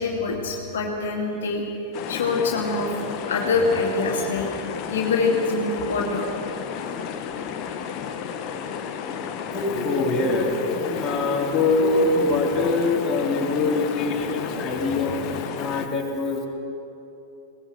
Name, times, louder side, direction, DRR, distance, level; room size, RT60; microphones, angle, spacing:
voice 1, 0.0-1.6 2.1-2.9 3.3-4.5 4.9-6.3 6.8-6.9, left 3 dB, 60° left, -1 dB, 2.5 m, -24 dB
sound 1, 1.9-15.9, left 7 dB, 40° left, 1.4 m, -32 dB
voice 2, 9.5-16.5, left 3 dB, 20° left, -2 dB, 3.3 m, -24 dB
21.5 x 19.0 x 6.4 m, 2.9 s
figure-of-eight pair, 90°, 0 cm